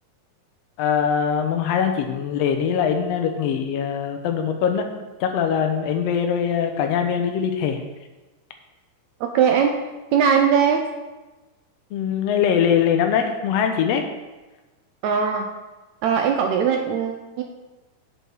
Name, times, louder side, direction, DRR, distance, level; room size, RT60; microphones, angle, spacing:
voice 1, 0.8-4.9 5.2-7.8 11.9-14.1, left 7 dB, 85° left, 5 dB, 1.4 m, -22 dB
voice 2, 9.2-9.8 10.1-10.9 15.0-15.5 16.0-17.4, right 7 dB, 75° right, 4 dB, 1.7 m, -20 dB
7.6 x 5.4 x 6.2 m, 1.1 s
omnidirectional pair, 3.8 m